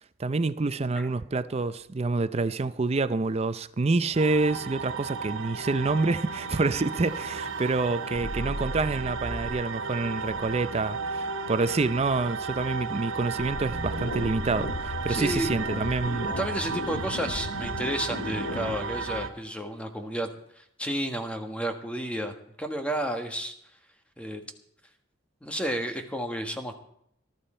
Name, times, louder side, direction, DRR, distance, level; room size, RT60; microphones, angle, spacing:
voice 1, 0.2-16.3, right 3 dB, 30° right, 0.5 m, -27 dB
sound 1, 4.1-19.3, right 4 dB, 90° right, 1.2 m, -34 dB
sound 2, 6.5-9.8 10.3-10.8 13.4-17.5, right 1 dB, 65° right, 1.2 m, -40 dB
sound 3, 13.8-18.8, left 1 dB, 80° left, 1.8 m, -36 dB
voice 2, 15.1-15.6 16.2-20.3 20.6-23.5 24.2-24.4 25.4-26.7, right 1 dB, 5° left, 1.4 m, -32 dB
19.5 x 12.0 x 4.4 m
head